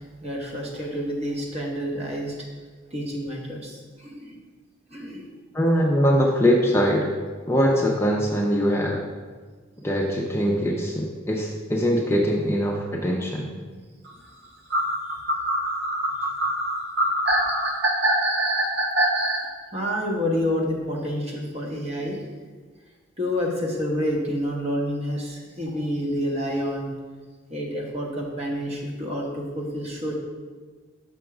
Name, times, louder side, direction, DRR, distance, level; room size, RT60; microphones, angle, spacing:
voice 1, 0.0-2.3 2.9-4.4 4.9-5.2 19.7-22.2 23.2-26.9 27.5-30.1, equal, 30° right, -1 dB, 1.1 m, -28 dB
voice 2, 5.5-7.1 7.5-9.1 9.8-13.5, equal, 15° left, -1 dB, 0.5 m, -22 dB
sound 1, 14.7-19.4, right 1 dB, 60° right, 0.9 m, -23 dB
6.1 x 3.6 x 5.9 m, 1.5 s
head